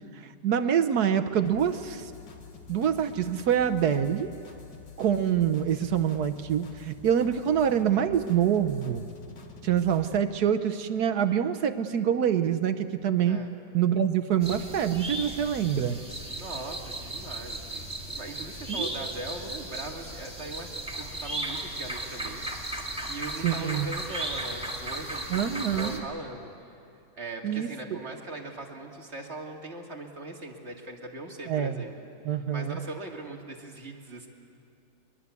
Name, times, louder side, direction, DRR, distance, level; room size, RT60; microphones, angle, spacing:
voice 1, 0.4-2.1 2.7-4.3 5.0-9.0 9.6-13.4 13.7-16.0 18.7-18.9 23.4-23.9 25.3-26.0 27.4-28.0 31.5-31.8 32.2-32.8, right 9 dB, 65° right, 10 dB, 1.3 m, -26 dB
sound 1, 1.5-10.2, left 6 dB, 80° left, 2.4 m, -48 dB
sound 2, 14.4-26.0, right 1 dB, 5° right, 2.1 m, -36 dB
voice 2, 16.4-26.5 27.1-32.0 32.3-34.3, right 2 dB, 40° right, 0 dB, 2.4 m, -40 dB
22.5 x 22.5 x 8.3 m, 2.5 s
omnidirectional pair, 1.9 m